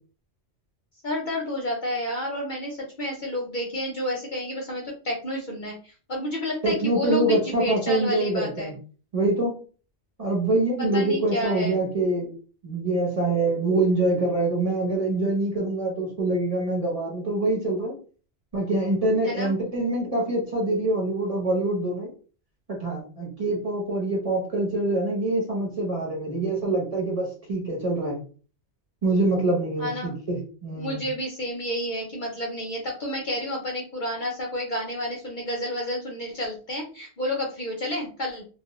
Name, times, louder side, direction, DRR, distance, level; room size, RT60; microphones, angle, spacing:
voice 1, 1.0-8.7 10.8-11.8 19.2-19.5 29.8-30.2 30.7-38.4, left 1 dB, 50° left, -1 dB, 0.7 m, -30 dB
voice 2, 6.6-8.7 9.1-9.6 10.2-12.3 12.6-17.9 18.5-22.1 22.7-28.2 29.0-31.0, right 2 dB, 35° right, -3 dB, 0.9 m, -25 dB
2.3 x 2.2 x 2.9 m, 0.38 s
omnidirectional pair, 1.2 m